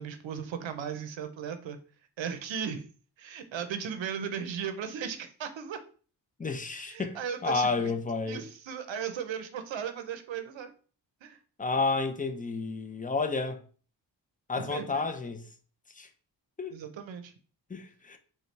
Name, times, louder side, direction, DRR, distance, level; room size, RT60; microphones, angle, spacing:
voice 1, 0.0-1.8 2.2-2.8 3.2-5.8 6.9-7.9 8.3-10.7 11.2-11.4 14.6-15.0 16.7-17.3, right 7 dB, 80° right, 0.7 m, -36 dB
voice 2, 6.4-8.4 11.6-13.6 14.5-15.5 15.9-16.1 16.6-16.8 17.7-18.2, left 4 dB, 20° left, 0.6 m, -31 dB
5.1 x 2.3 x 3.2 m
cardioid pair, 65°, 45 cm